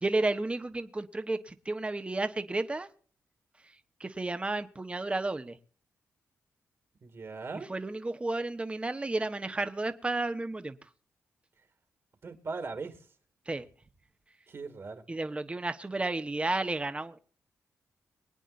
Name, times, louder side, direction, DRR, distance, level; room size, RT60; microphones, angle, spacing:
voice 1, 0.0-2.9 4.0-5.6 7.7-10.8 13.5-13.7 15.1-17.2, right 2 dB, 20° right, 9 dB, 1.2 m, -32 dB
voice 2, 7.0-7.7 12.2-13.1 14.5-15.0, right 4 dB, 50° right, 6 dB, 2.4 m, -39 dB
24.0 x 9.1 x 2.6 m, 0.43 s
cardioid pair, 75°, 5 cm